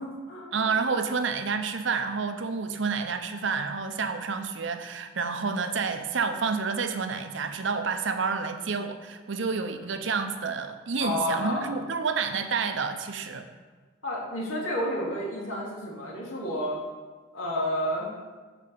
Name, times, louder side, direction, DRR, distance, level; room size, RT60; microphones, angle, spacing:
voice 1, 0.0-0.5 11.0-11.7 14.0-16.8 17.3-18.2, equal, 90° left, -3 dB, 2.2 m, -30 dB
voice 2, 0.5-13.5, right 5 dB, 70° right, 8 dB, 0.7 m, -29 dB
7.5 x 4.8 x 6.7 m, 1.4 s
head